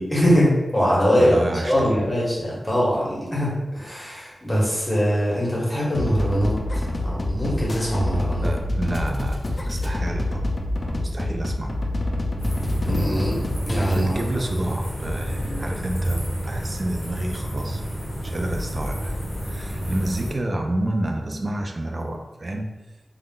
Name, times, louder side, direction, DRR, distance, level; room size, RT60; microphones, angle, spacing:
voice 1, 0.0-1.4 1.6-8.5 12.8-14.2, equal, 10° left, -7 dB, 1.2 m, -22 dB
voice 2, 1.2-2.0 8.4-10.5 10.8-11.9 13.9-22.7, right 1 dB, 40° right, 3 dB, 0.4 m, -29 dB
sound 1, 5.9-13.9, left 1 dB, 50° left, 0.3 m, -27 dB
sound 2, 6.7-13.0 13.4-13.5 15.0-17.5 18.5-21.2, left 1 dB, 75° right, 0.7 m, -37 dB
sound 3, 12.4-20.3, right 1 dB, 30° left, 0.7 m, -30 dB
2.3 x 2.2 x 3.6 m, 1.1 s
wide cardioid pair, 70°, 0 cm